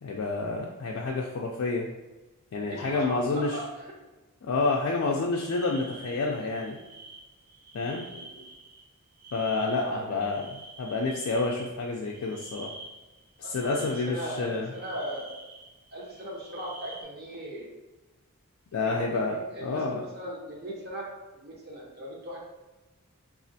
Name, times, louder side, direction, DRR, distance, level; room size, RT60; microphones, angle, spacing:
voice 1, 0.0-1.9 2.5-3.6 4.4-6.8 7.7-8.0 9.3-12.7 13.4-14.7 18.7-20.0, left 3 dB, 65° left, -2 dB, 0.3 m, -29 dB
voice 2, 2.6-3.9 5.0-5.2 8.1-8.5 9.7-10.2 13.4-15.3 15.9-17.7 18.8-21.0 21.3-22.4, right 1 dB, 45° right, -3 dB, 0.8 m, -38 dB
sound 1, 5.3-17.0, right 2 dB, 85° right, 0.6 m, -48 dB
4.1 x 2.4 x 2.6 m, 1.1 s
head